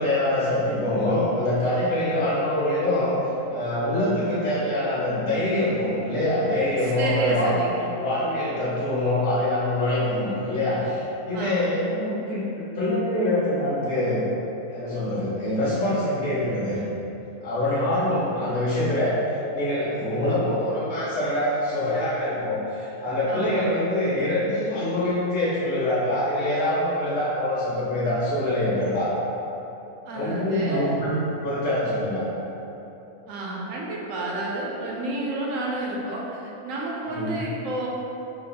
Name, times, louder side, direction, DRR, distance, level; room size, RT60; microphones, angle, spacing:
voice 1, 0.0-3.2 3.5-7.5 8.0-12.4 12.8-14.2 14.7-16.8 17.4-19.1 19.5-29.1 30.1-32.2 37.1-37.4, left 1 dB, 55° left, -10 dB, 1.0 m, -24 dB
voice 2, 6.8-7.9 11.3-11.9 23.3-23.7 30.1-30.9 33.3-37.9, right 2 dB, 70° right, -3 dB, 0.9 m, -30 dB
3.1 x 2.5 x 3.9 m, 3.0 s
omnidirectional pair, 1.6 m